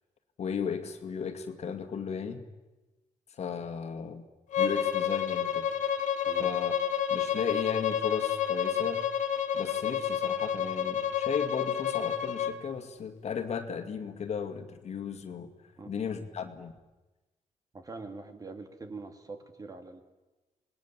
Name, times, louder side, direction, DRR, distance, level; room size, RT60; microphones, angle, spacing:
voice 1, 0.4-2.4 3.3-4.3 4.6-5.7 5.9-6.1 6.4-6.7 7.1-9.0 9.5-15.5 15.9-16.7, left 6 dB, 60° left, 7 dB, 2.2 m, -35 dB
Bowed string instrument, 4.5-12.6, left 9 dB, 85° left, 1.5 m, -29 dB
voice 2, 17.7-20.0, right 3 dB, 30° right, 7 dB, 2.3 m, -44 dB
26.5 x 20.0 x 7.5 m, 1.1 s
cardioid pair, 110°, 12 cm